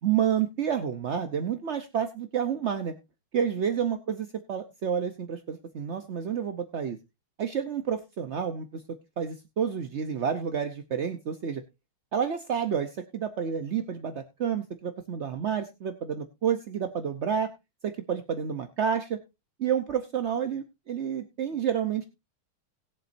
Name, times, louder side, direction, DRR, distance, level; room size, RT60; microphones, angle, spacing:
voice 1, 0.0-2.9 3.3-7.0 7.4-8.8 9.2-11.6 12.1-17.5 17.8-19.2 19.6-22.0, right 8 dB, 60° right, 8 dB, 0.7 m, -29 dB
20.0 x 7.4 x 2.6 m, 0.24 s
omnidirectional pair, 2.3 m